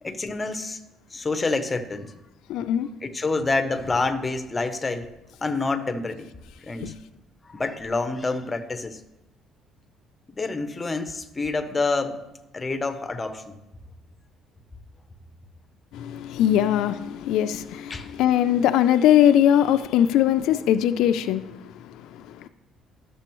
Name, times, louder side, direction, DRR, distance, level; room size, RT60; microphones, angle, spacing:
voice 1, 0.0-0.8 1.1-2.1 3.0-5.1 5.4-6.3 6.6-6.9 7.4-9.0 10.3-13.6 17.9-18.1, left 3 dB, 20° left, 8 dB, 0.6 m, -28 dB
voice 2, 2.5-2.9 15.9-22.5, left 11 dB, 80° left, 11 dB, 0.3 m, -21 dB
11.5 x 6.8 x 3.0 m, 0.96 s
cardioid pair, 125°, 0 cm